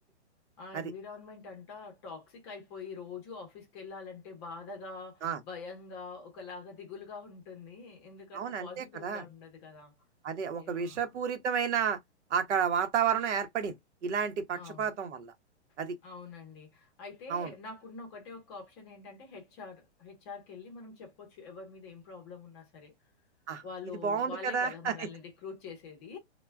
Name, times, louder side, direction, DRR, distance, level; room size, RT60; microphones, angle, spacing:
voice 1, 0.6-9.9 10.6-11.1 14.5-15.0 16.0-23.0 23.6-26.2, left 4 dB, 25° left, 0.7 m, -45 dB
voice 2, 8.3-9.2 10.2-12.0 12.3-13.7 14.0-15.3 15.8-15.9 17.3-17.5 23.5-23.6 24.0-25.1, right 7 dB, 85° right, 0.8 m, -31 dB
2.2 x 2.1 x 3.3 m
hypercardioid pair, 160°, 34 cm